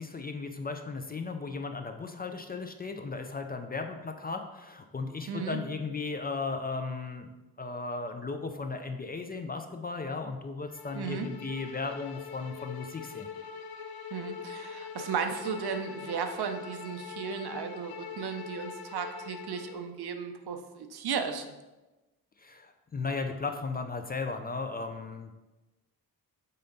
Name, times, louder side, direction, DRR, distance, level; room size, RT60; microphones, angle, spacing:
voice 1, 0.0-7.3 7.6-13.3 22.4-25.4, left 4 dB, 25° left, 6 dB, 0.4 m, -36 dB
voice 2, 5.3-5.6 10.9-11.3 14.1-21.5, right 6 dB, 75° right, 6 dB, 0.7 m, -35 dB
Bowed string instrument, 10.7-19.8, left 6 dB, 65° left, 0.7 m, -43 dB
5.7 x 3.8 x 5.3 m, 1.1 s
wide cardioid pair, 150°, 39 cm